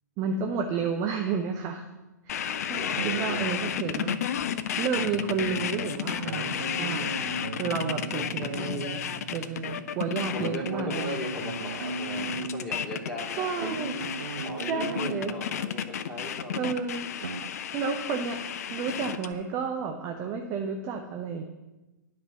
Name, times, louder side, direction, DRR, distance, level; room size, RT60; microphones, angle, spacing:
voice 1, 0.2-1.8 2.2-4.2 4.8-7.1 7.6-9.0 9.3-11.2 13.4-13.9 14.7-15.3 16.5-17.1 17.7-18.4 18.7-21.4, right 5 dB, 30° right, 4 dB, 0.8 m, -31 dB
sound 1, 2.3-19.3, left 9 dB, 55° left, 0.6 m, -32 dB
voice 2, 2.7-3.8 10.3-13.8 14.4-16.7, left 1 dB, ahead, -5 dB, 2.5 m, -38 dB
sound 2, 2.9-4.3 4.9-16.1 16.8-17.5, right 4 dB, 70° right, 0.5 m, -38 dB
10.5 x 5.4 x 7.1 m, 1.1 s
figure-of-eight pair, 110°, 10 cm